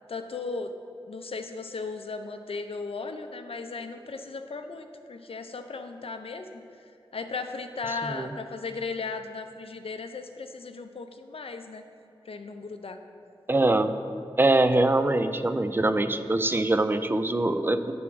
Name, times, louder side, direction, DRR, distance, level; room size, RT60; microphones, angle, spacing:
voice 1, 0.1-0.7 1.1-6.6 7.1-11.8 12.3-13.0, left 4 dB, 75° left, 7 dB, 0.5 m, -36 dB
voice 2, 7.9-8.3 13.5-13.9 14.4-17.9, right 2 dB, 20° right, 10 dB, 0.4 m, -23 dB
9.6 x 3.5 x 6.1 m, 2.5 s
wide cardioid pair, 65°, 10 cm